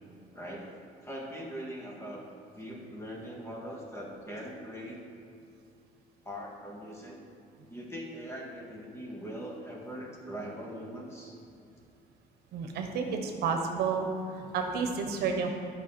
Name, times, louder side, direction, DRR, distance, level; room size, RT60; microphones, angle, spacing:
voice 1, 0.3-0.8 1.0-2.3 2.5-5.0 6.2-7.2 7.7-11.4, equal, 15° left, -2 dB, 1.7 m, -41 dB
voice 2, 12.5-14.1 14.3-15.5, right 5 dB, 75° right, 4 dB, 1.0 m, -31 dB
10.5 x 5.7 x 4.4 m, 2.5 s
cardioid pair, 110°, 17 cm